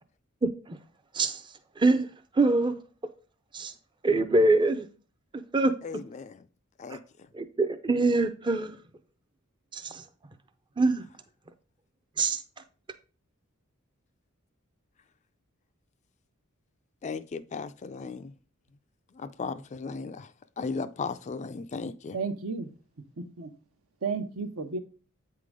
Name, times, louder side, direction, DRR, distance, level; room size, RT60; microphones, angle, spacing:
voice 1, 0.4-0.8 1.1-1.4 1.8-2.1 2.4-2.8 3.5-3.7 4.0-4.9 5.5-5.7 6.9-7.0 7.3-8.7 9.7-10.0 10.8-11.0 12.2-12.4, right 2 dB, 20° right, 0.5 m, -24 dB
voice 2, 5.8-6.4 6.8-7.0 17.0-18.3 19.1-20.3 20.6-22.2, left 4 dB, 35° left, 0.4 m, -36 dB
voice 3, 22.1-22.7 23.2-23.5 24.0-24.8, right 4 dB, 75° right, 0.9 m, -32 dB
8.2 x 3.8 x 4.9 m
head